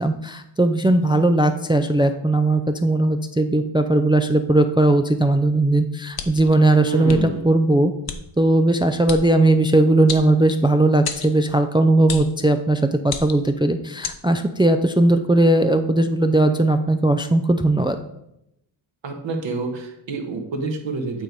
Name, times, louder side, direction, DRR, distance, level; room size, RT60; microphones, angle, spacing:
voice 1, 0.0-7.9 8.4-18.0, right 2 dB, 10° right, 8 dB, 0.3 m, -18 dB
sound 1, 6.1-6.5 7.1-7.2 8.1-8.2 9.1-9.2 10.1-10.7 11.0-11.3 12.1-12.3 13.0-13.5 14.0-14.2, left 6 dB, 50° left, 0.8 m, -31 dB
voice 2, 6.8-7.5 19.0-21.2, right 3 dB, 65° right, 4 dB, 1.5 m, -28 dB
8.9 x 4.0 x 4.6 m, 0.81 s
wide cardioid pair, 105°, 49 cm